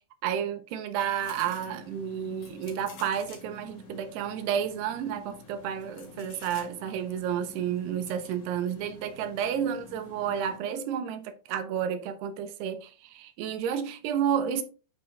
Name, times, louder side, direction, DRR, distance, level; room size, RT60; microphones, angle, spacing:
voice 1, 0.2-14.6, right 8 dB, 80° right, 2.5 m, -31 dB
sound 1, 1.2-10.6, left 4 dB, 50° left, 2.1 m, -49 dB
9.7 x 5.1 x 3.4 m
omnidirectional pair, 5.3 m